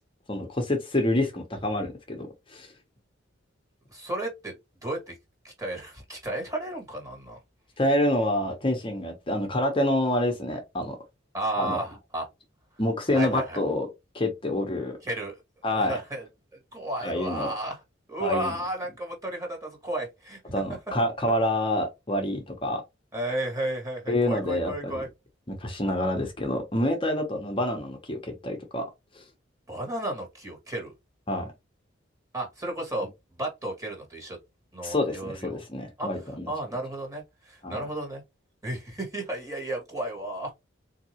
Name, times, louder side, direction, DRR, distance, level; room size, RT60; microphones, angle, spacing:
voice 1, 0.3-2.7 7.8-11.0 11.6-11.8 12.8-13.9 14.1-15.0 15.6-16.0 17.0-17.5 18.2-18.5 20.5-22.8 24.1-25.0 25.5-28.8 29.1-29.2 31.3-31.5 34.8-36.5 37.6-37.9, left 1 dB, 25° left, 0.8 m, -27 dB
voice 2, 3.9-4.6 4.8-5.2 5.4-7.4 11.3-12.3 13.1-13.6 15.0-15.4 15.7-16.2 16.7-17.8 18.1-20.4 23.1-25.1 29.7-30.9 32.3-33.1 33.4-34.4 34.7-35.6 36.0-36.1 36.5-38.2 38.6-40.5, right 1 dB, 15° right, 1.5 m, -33 dB
3.9 x 2.7 x 2.9 m
head